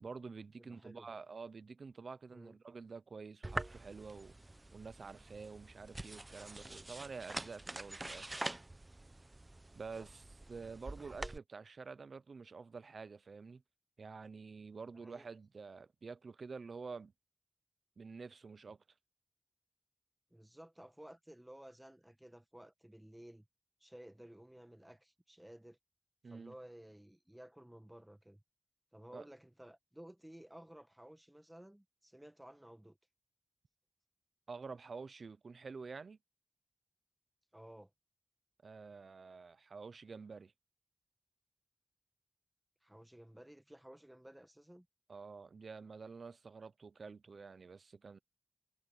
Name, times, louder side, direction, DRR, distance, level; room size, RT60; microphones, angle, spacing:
voice 1, 0.0-4.3 4.7-8.5 9.7-10.2 10.5-13.6 14.0-17.1 18.0-18.8 26.2-26.5 29.1-29.2 34.5-36.2 38.6-40.5 45.1-48.2, right 4 dB, 90° right, 0.5 m, -49 dB
voice 2, 0.6-1.1 2.3-2.6 10.0-10.1 14.9-15.3 20.3-23.5 23.8-25.8 26.3-28.4 28.9-33.0 37.5-37.9 42.8-44.9, right 1 dB, 10° right, 1.6 m, -55 dB
sound 1, 3.4-11.4, right 2 dB, 30° right, 0.7 m, -45 dB
wide cardioid pair, 80°, 0 cm